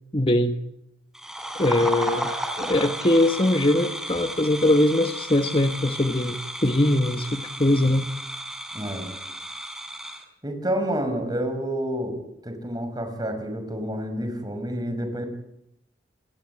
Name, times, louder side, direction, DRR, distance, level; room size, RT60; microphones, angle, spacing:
voice 1, 0.1-0.5 1.6-2.3 2.6-8.1, left 1 dB, 30° left, 7 dB, 1.3 m, -21 dB
sound 1, 1.1-10.2, right 1 dB, 5° right, 4.2 m, -33 dB
voice 2, 8.7-9.1 10.4-15.2, equal, 20° right, 7 dB, 6.1 m, -29 dB
30.0 x 20.0 x 9.7 m, 0.80 s
head